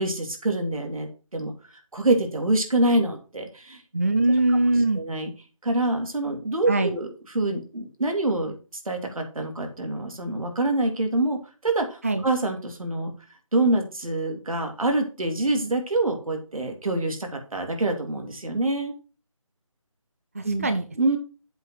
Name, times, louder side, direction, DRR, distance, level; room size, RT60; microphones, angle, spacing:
voice 1, 0.0-1.5 1.9-3.8 5.0-5.3 5.6-7.1 7.3-8.5 8.8-13.1 13.5-18.9 20.4-20.7 21.0-21.2, right 2 dB, 80° right, 3 dB, 3.1 m, -25 dB
voice 2, 3.9-5.0 6.7-7.0 12.0-12.2 20.3-20.9, right 2 dB, 25° right, 9 dB, 0.4 m, -22 dB
7.8 x 5.5 x 6.4 m, 0.35 s
figure-of-eight pair, 170°, 18 cm